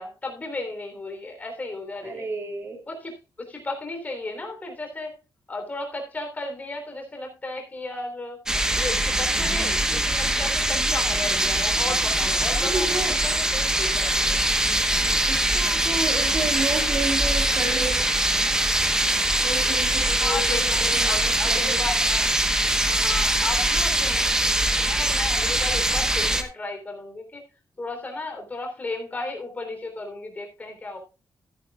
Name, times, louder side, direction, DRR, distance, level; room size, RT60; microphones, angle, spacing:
voice 1, 0.0-2.3 2.9-5.1 5.5-8.4 8.7-14.4 20.1-22.3 22.8-27.4 27.8-31.0, left 2 dB, 20° left, 3 dB, 3.5 m, -35 dB
voice 2, 2.0-2.8 12.6-13.2 15.2-18.0 19.4-21.8, right 3 dB, 35° right, 3 dB, 3.2 m, -31 dB
sound 1, 8.5-26.4, right 1 dB, 10° right, 1.1 m, -22 dB
14.5 x 10.0 x 2.4 m, 0.30 s
wide cardioid pair, 175°, 7 cm